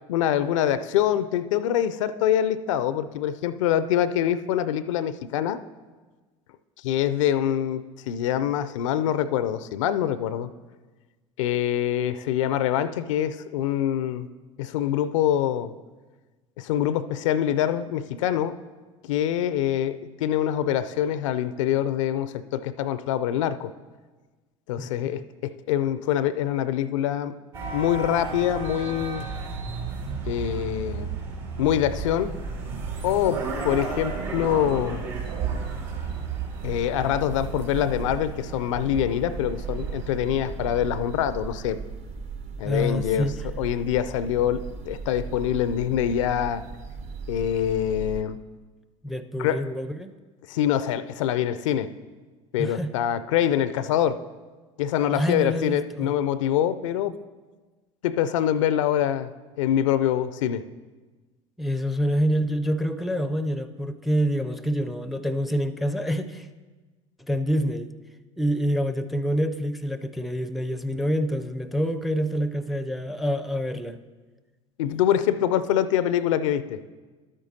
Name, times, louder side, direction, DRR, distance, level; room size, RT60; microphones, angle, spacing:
voice 1, 0.1-5.6 6.8-10.5 11.4-14.3 14.6-15.7 16.6-18.6 19.0-23.7 24.7-27.4 27.7-29.3 30.3-31.1 31.6-32.3 33.0-35.0 36.6-41.8 42.6-46.6 47.3-48.4 49.4-49.7 50.5-51.9 52.5-54.2 54.8-57.2 58.0-59.3 59.6-60.6 74.8-76.8, left 10 dB, 70° left, 15 dB, 0.4 m, -25 dB
voice 2, 24.8-25.3 42.6-43.3 49.0-50.1 52.6-52.9 55.1-56.1 61.6-66.5 67.3-67.9 68.4-74.0, equal, ahead, 12 dB, 0.4 m, -27 dB
sound 1, 27.5-41.0, right 5 dB, 70° right, 2.4 m, -34 dB
sound 2, 31.8-48.2, right 5 dB, 40° right, 0.7 m, -38 dB
12.0 x 8.9 x 2.7 m, 1.3 s
figure-of-eight pair, 70°, 17 cm